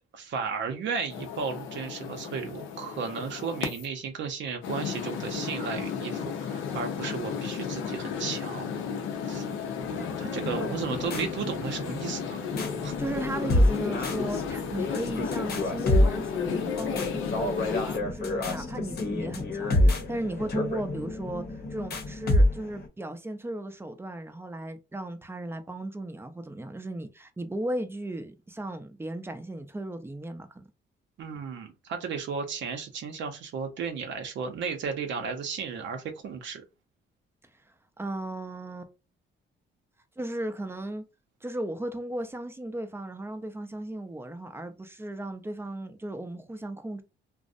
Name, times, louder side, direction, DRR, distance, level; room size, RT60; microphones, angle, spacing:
voice 1, 0.1-8.7 9.3-9.5 10.2-12.4 12.8-12.9 31.2-36.6, right 5 dB, 70° right, 0.6 m, -34 dB
sound 1, 1.1-3.9 4.6-18.0, left 6 dB, 90° left, 0.6 m, -34 dB
sound 2, 9.8-22.9, left 1 dB, 55° left, 0.8 m, -28 dB
voice 2, 10.6-11.1 12.7-30.7 38.0-38.9 40.2-41.0 41.4-47.0, right 1 dB, 10° right, 0.5 m, -36 dB
2.5 x 2.0 x 2.5 m
cardioid pair, 90°, 20 cm